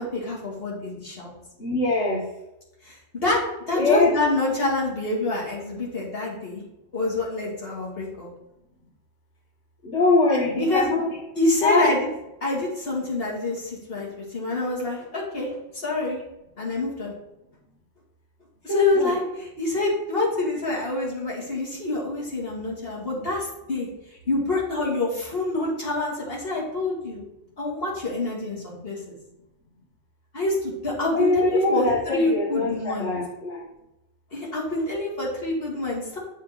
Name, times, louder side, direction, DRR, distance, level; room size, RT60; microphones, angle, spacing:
voice 1, 0.0-1.3 2.8-6.6 6.9-8.3 10.3-10.9 11.4-12.1 12.4-16.2 16.6-17.1 18.6-23.9 24.3-27.2 27.6-29.2 30.3-33.1 34.3-36.2, left 2 dB, 50° left, -3 dB, 2.4 m, -26 dB
voice 2, 1.6-2.2 3.7-4.2 9.9-11.1 11.6-11.9 18.7-19.1 31.1-33.6, left 2 dB, 70° left, -6 dB, 1.6 m, -22 dB
7.2 x 3.8 x 6.5 m, 0.89 s
omnidirectional pair, 1.3 m